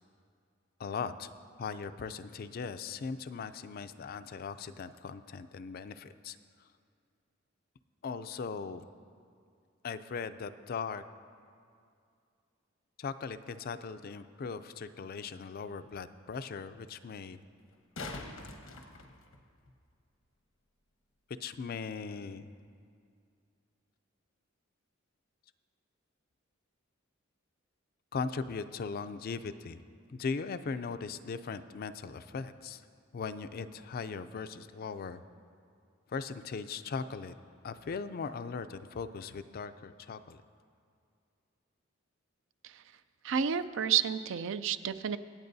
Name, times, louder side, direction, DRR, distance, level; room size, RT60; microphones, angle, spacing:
voice 1, 0.8-1.3 1.6-6.4 8.0-8.8 9.8-11.0 13.0-17.4 21.4-22.5 28.1-29.8 30.1-32.8 33.1-35.2 36.1-37.3 37.6-40.4, left 5 dB, 45° left, 12 dB, 0.4 m, -39 dB
sound 1, 14.7-14.8 17.6-19.7 22.6-22.7, left 2 dB, 90° left, 1.0 m, -44 dB
voice 2, 43.2-45.2, right 8 dB, 65° right, 13 dB, 0.4 m, -30 dB
25.5 x 8.5 x 2.7 m, 2.3 s
head